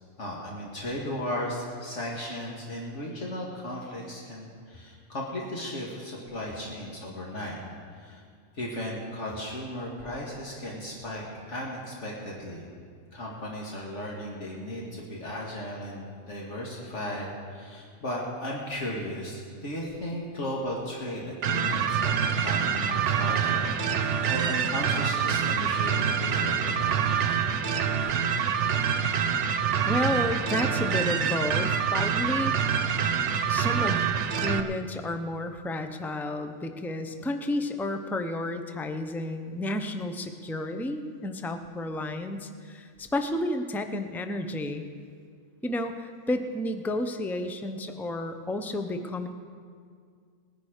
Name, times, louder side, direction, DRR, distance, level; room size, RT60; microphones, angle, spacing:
voice 1, 0.2-7.6 7.9-8.2 8.5-12.7 13.1-27.0, left 1 dB, 70° left, -3 dB, 2.1 m, -36 dB
sound 1, 21.4-34.6, right 7 dB, 70° right, 1.0 m, -26 dB
voice 2, 29.9-32.6 33.5-34.0 34.4-44.8 45.6-49.3, left 1 dB, ahead, 7 dB, 0.4 m, -31 dB
19.0 x 10.5 x 5.0 m, 2.1 s
omnidirectional pair, 1.3 m